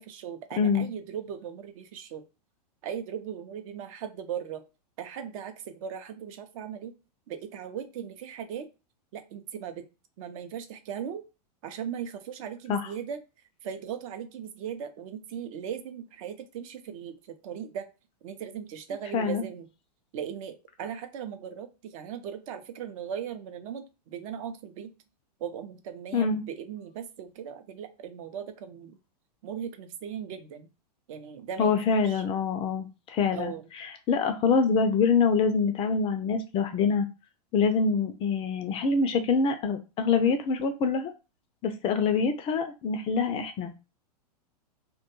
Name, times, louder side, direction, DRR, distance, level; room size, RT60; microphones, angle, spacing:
voice 1, 0.0-2.2 2.8-4.6 5.0-6.9 7.3-8.7 9.1-9.8 10.2-11.2 11.6-13.2 13.6-17.9 18.2-19.7 20.1-24.9 25.4-29.0 29.4-30.7 31.1-32.2 33.3-33.7, right 8 dB, 55° right, 8 dB, 0.6 m, -38 dB
voice 2, 0.6-0.9 12.7-12.9 19.1-19.4 26.1-26.4 31.6-37.1 37.5-41.1 41.6-43.7, left 5 dB, 25° left, 8 dB, 0.4 m, -25 dB
2.2 x 2.2 x 2.9 m, 0.29 s
hypercardioid pair, 110°, 21 cm